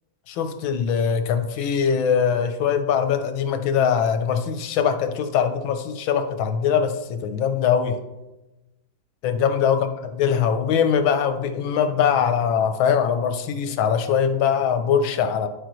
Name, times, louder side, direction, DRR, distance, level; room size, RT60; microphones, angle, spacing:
voice 1, 0.3-8.0 9.2-15.5, left 7 dB, 85° left, 8 dB, 1.5 m, -22 dB
12.0 x 4.9 x 3.0 m, 1.0 s
omnidirectional pair, 2.1 m